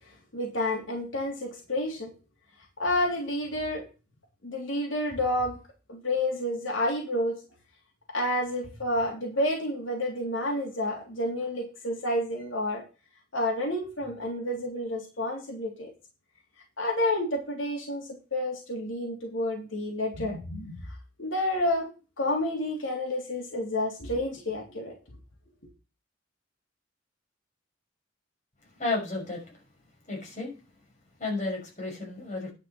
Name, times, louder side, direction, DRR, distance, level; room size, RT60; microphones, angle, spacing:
voice 1, 0.3-2.1 2.8-3.8 4.4-5.6 5.9-7.4 8.1-12.8 13.3-15.9 16.8-20.8 21.2-21.9 22.2-24.9, left 1 dB, 85° left, 0 dB, 3.1 m, -29 dB
voice 2, 28.8-29.5 30.1-30.5 31.2-32.5, left 3 dB, 40° left, -1 dB, 5.9 m, -32 dB
10.5 x 5.7 x 5.9 m, 0.31 s
head